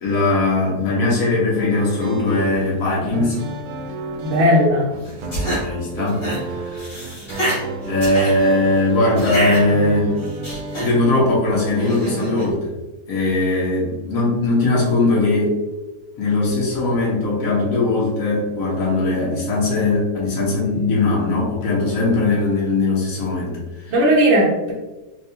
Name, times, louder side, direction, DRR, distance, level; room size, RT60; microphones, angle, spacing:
voice 1, 0.0-3.4 5.3-7.2 7.8-10.1 10.7-12.7 13.1-15.5 16.2-23.9, left 2 dB, 60° left, -5 dB, 1.4 m, -20 dB
sound 1, 1.6-12.5, right 4 dB, 85° right, 1.1 m, -32 dB
voice 2, 4.2-4.9 23.9-24.7, equal, 65° right, -3 dB, 0.7 m, -16 dB
sound 2, 5.0-5.6 6.0-6.4 6.7-7.6 8.0-8.3 9.2-9.6 10.2-10.9 11.8-12.4, right 1 dB, 20° left, 1.0 m, -26 dB
3.9 x 2.4 x 2.7 m, 1.1 s
omnidirectional pair, 1.7 m